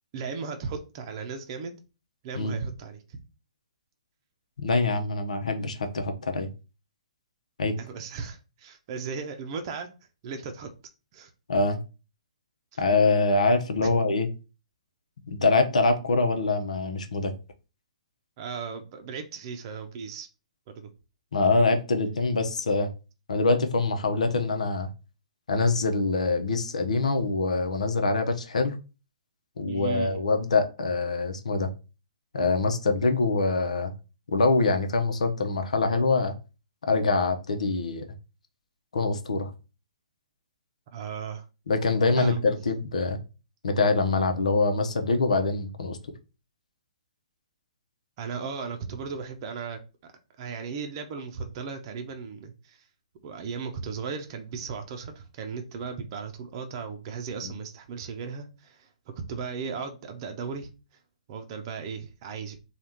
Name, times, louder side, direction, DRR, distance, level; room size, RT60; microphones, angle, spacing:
voice 1, 0.1-1.7 2.2-3.2 7.8-9.9 10.2-10.7 11.1-11.3 12.7-12.8 13.8-13.9 18.4-20.3 20.8-20.9 29.7-30.2 40.9-41.5 42.1-42.4 48.2-50.1 50.4-52.8 53.2-58.9 59.3-60.7 61.3-62.6, right 5 dB, 40° right, 0.6 m, -36 dB
voice 2, 4.6-6.5 7.6-7.7 11.5-11.8 12.8-14.3 15.3-17.3 21.3-22.9 23.3-24.9 25.5-28.8 29.6-31.7 32.3-33.9 34.3-36.3 36.8-38.0 38.9-39.5 41.7-43.2 43.6-46.0 57.4-57.5, left 3 dB, 75° left, 0.8 m, -24 dB
3.4 x 2.4 x 4.2 m
hypercardioid pair, 130°, 4 cm